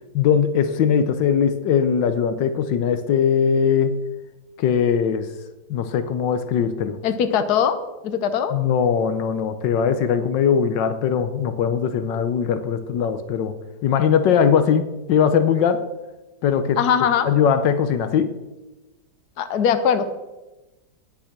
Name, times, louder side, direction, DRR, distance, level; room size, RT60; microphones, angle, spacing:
voice 1, 0.1-4.0 4.6-5.3 5.7-7.0 8.5-13.5 13.8-15.8 16.4-18.3, left 7 dB, 85° left, 10 dB, 1.5 m, -20 dB
voice 2, 7.0-7.8 8.0-8.5 16.8-17.3 19.4-20.1, left 8 dB, 65° left, 10 dB, 1.4 m, -20 dB
18.5 x 6.3 x 6.0 m, 1.1 s
omnidirectional pair, 1.9 m